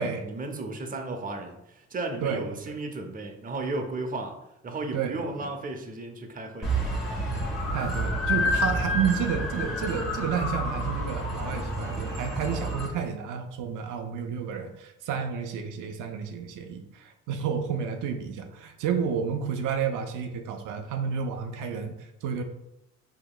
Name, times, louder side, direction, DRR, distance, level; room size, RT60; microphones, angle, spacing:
voice 1, 0.0-4.4 4.6-6.7, right 2 dB, 30° right, 4 dB, 0.6 m, -34 dB
voice 2, 2.2-2.7 4.9-5.5 7.7-22.4, right 7 dB, 90° right, 5 dB, 0.5 m, -31 dB
sound 1, 6.6-12.9, equal, ahead, 1.3 m, -29 dB
4.8 x 2.8 x 2.2 m, 0.85 s
cardioid pair, 90°, 30 cm